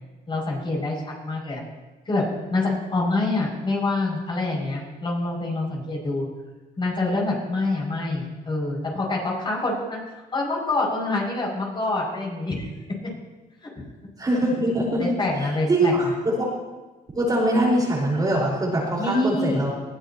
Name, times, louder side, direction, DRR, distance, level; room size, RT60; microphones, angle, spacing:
voice 1, 0.3-1.6 2.1-6.3 6.8-10.0 10.3-12.7 15.0-16.1 19.0-19.6, left 2 dB, 30° left, -2 dB, 6.7 m, -26 dB
voice 2, 14.2-15.1 15.7-16.4 17.1-19.7, right 1 dB, 20° right, -3 dB, 4.9 m, -22 dB
21.0 x 16.5 x 3.0 m, 1.2 s
cardioid pair, 110°, 17 cm